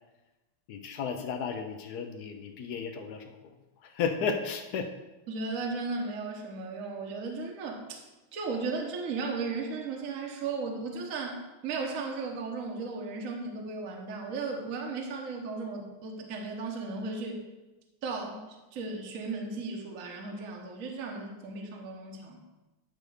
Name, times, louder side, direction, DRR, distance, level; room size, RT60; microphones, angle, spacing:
voice 1, 0.7-3.5 3.8-4.9, left 6 dB, 80° left, 5 dB, 0.8 m, -34 dB
voice 2, 5.3-8.0 8.3-17.4 18.0-22.4, right 4 dB, 50° right, 1 dB, 1.1 m, -35 dB
10.0 x 3.4 x 6.3 m, 1.1 s
omnidirectional pair, 2.4 m